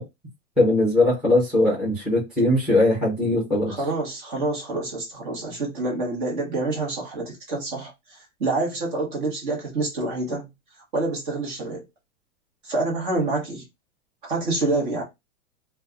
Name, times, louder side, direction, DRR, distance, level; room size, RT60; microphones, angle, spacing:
voice 1, 0.6-3.8, left 2 dB, ahead, 0.7 m, -20 dB
voice 2, 3.7-10.5 10.9-11.8 12.6-13.7 14.2-15.0, right 2 dB, 40° right, 1.2 m, -27 dB
2.5 x 2.3 x 3.5 m
supercardioid pair, 175°, 40 cm